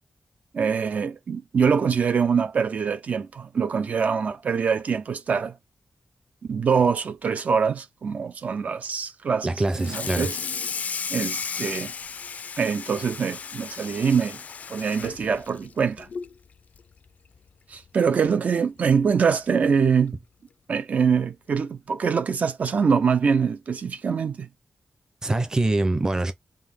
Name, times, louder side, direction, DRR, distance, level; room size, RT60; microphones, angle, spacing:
voice 1, 0.5-5.5 6.5-9.5 9.8-10.4 11.1-11.9 12.6-14.4 14.7-16.1 17.7-20.2 20.7-24.5, right 6 dB, 60° right, 0.6 m, -24 dB
voice 2, 9.4-10.3 25.2-26.3, right 2 dB, 25° right, 0.7 m, -24 dB
Water tap faucet / Sink (filling or washing), 9.7-16.4 16.7-17.0 17.3-17.4 17.9-18.0 19.1-19.2 19.6-19.9, left 6 dB, 65° left, 0.3 m, -34 dB
3.7 x 2.6 x 3.5 m
wide cardioid pair, 140°, 3 cm